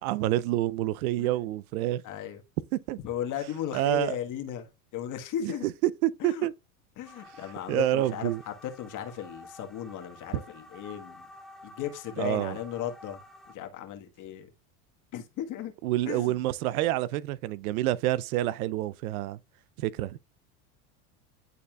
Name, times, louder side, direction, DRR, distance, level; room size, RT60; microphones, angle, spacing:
voice 1, 0.0-2.0 2.9-3.0 3.7-4.2 5.4-6.5 7.7-8.4 12.2-12.6 15.8-19.4 19.8-20.2, right 14 dB, 75° right, 0.6 m, -28 dB
voice 2, 2.0-2.4 3.0-5.7 6.2-6.5 7.0-11.3 11.6-13.2 13.5-14.5 15.1-15.7 16.1-16.4, left 10 dB, 45° left, 1.5 m, -36 dB
sound 1, 7.0-13.5, left 1 dB, ahead, 0.5 m, -50 dB
10.5 x 4.1 x 2.3 m
hypercardioid pair, 100°, 44 cm